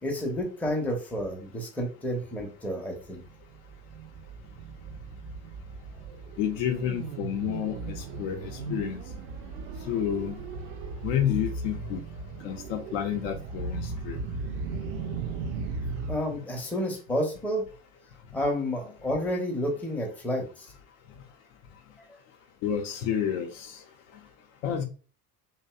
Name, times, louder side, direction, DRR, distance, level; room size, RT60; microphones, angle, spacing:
voice 1, 0.0-3.2 16.1-17.6 18.3-20.7, equal, 5° left, 0 dB, 0.6 m, -30 dB
sound 1, 3.1-16.2, right 3 dB, 55° right, 0.5 m, -37 dB
voice 2, 6.4-9.0 9.9-10.4 11.0-12.0 12.4-14.2 16.3-16.4 22.6-23.8 24.6-24.8, left 9 dB, 55° left, 4 dB, 0.5 m, -30 dB
2.6 x 2.1 x 2.2 m, 0.36 s
hypercardioid pair, 65°, 43 cm